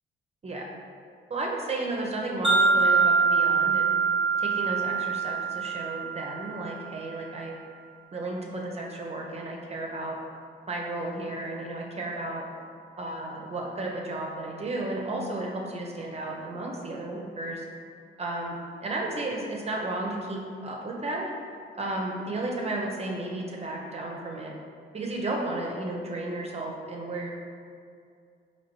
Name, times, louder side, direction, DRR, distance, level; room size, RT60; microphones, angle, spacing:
voice 1, 1.3-3.9 4.4-7.5 8.1-10.2 10.7-12.4 13.0-17.6 18.2-21.3 21.8-24.5 24.9-27.3, right 2 dB, 30° right, -1 dB, 0.5 m, -33 dB
Wind chime, 2.4-6.7, right 5 dB, 5° right, 0.8 m, -24 dB
4.0 x 3.0 x 3.0 m, 2.3 s
cardioid pair, 90°, 20 cm